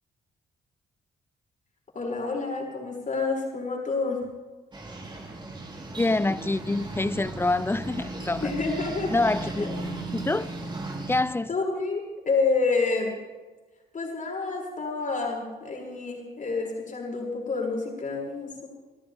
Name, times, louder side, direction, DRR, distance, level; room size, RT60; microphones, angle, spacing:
voice 1, 1.9-4.2 8.4-9.1 9.6-9.7 11.5-13.1 13.9-18.7, left 4 dB, 40° left, 6.5 m, -28 dB
sound 1, 4.7-11.2, right 2 dB, 25° right, 3.6 m, -36 dB
voice 2, 6.0-8.4 9.1-9.7 10.1-10.5 11.1-11.5, left 2 dB, 10° left, 0.5 m, -26 dB
27.0 x 13.5 x 3.5 m
cardioid pair, 90°, 20 cm